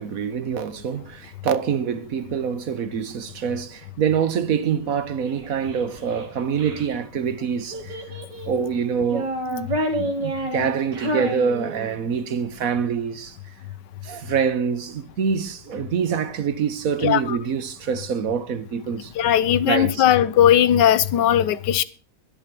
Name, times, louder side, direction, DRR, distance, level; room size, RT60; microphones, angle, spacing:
voice 1, 0.0-8.0 8.4-9.7 10.0-13.4 14.0-19.1 19.7-20.0, right 7 dB, 60° right, 1.3 m, -25 dB
Child speech kid speaking, 5.3-6.9 7.7-8.6 9.0-12.2, equal, 85° right, 3.1 m, -29 dB
voice 2, 17.0-17.4 19.2-21.8, left 10 dB, 90° left, 1.4 m, -18 dB
11.0 x 11.0 x 5.9 m
omnidirectional pair, 1.8 m